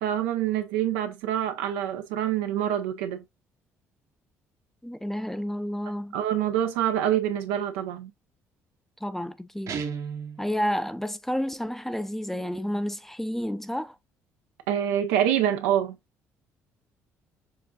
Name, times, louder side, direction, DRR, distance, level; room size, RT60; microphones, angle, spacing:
voice 1, 0.0-3.2 6.1-8.1 14.7-16.0, right 10 dB, 85° right, 0.7 m, -26 dB
voice 2, 4.8-6.2 9.0-9.8 10.4-14.0, equal, 5° left, 0.5 m, -30 dB
Guitar, 9.7-10.5, right 6 dB, 55° right, 0.9 m, -33 dB
6.6 x 2.5 x 2.3 m
hypercardioid pair, 60°, 7 cm